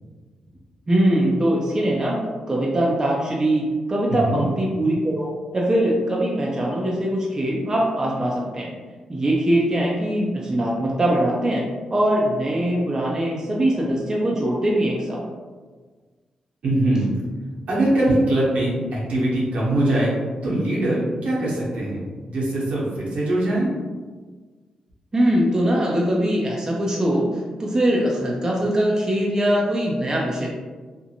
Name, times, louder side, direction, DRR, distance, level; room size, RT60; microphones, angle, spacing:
voice 1, 0.9-2.2 2.5-8.7 9.1-15.2 25.1-30.5, right 1 dB, 30° right, -3 dB, 0.5 m, -22 dB
voice 2, 4.1-4.4 16.6-17.1 17.7-20.1 20.4-22.0 22.3-23.7, right 1 dB, 75° right, -6 dB, 0.9 m, -22 dB
2.5 x 2.1 x 2.8 m, 1.4 s
cardioid pair, 65°, 2 cm